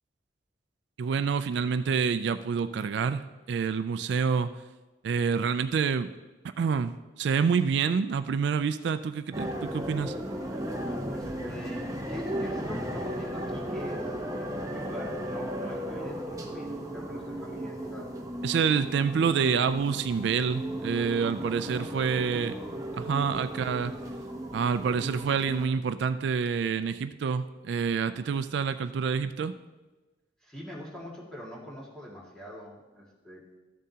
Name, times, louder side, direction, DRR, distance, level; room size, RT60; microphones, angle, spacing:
voice 1, 1.0-4.6 5.0-6.1 6.6-10.2 18.4-22.6 22.9-23.9 24.5-29.5, right 6 dB, 70° right, 11 dB, 0.3 m, -27 dB
sound 1, 9.3-25.7, equal, 20° right, 0.8 m, -35 dB
voice 2, 11.1-18.2 21.8-22.5 30.4-33.4, equal, 5° left, -6 dB, 2.0 m, -44 dB
13.5 x 7.3 x 2.8 m, 1.2 s
head